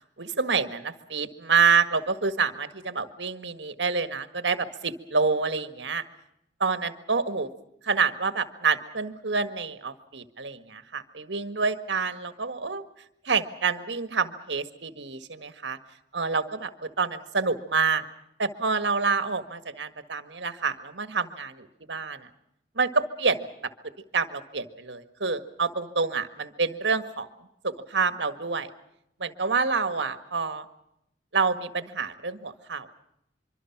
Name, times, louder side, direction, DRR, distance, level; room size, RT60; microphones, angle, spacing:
voice 1, 0.2-6.0 6.6-7.5 7.8-12.9 13.2-15.8 16.1-18.0 18.4-22.3 22.8-23.5 24.1-27.3 27.6-28.7 29.2-30.6 31.3-32.9, right 5 dB, 75° right, 10 dB, 1.7 m, -27 dB
25.0 x 24.5 x 6.0 m, 0.80 s
head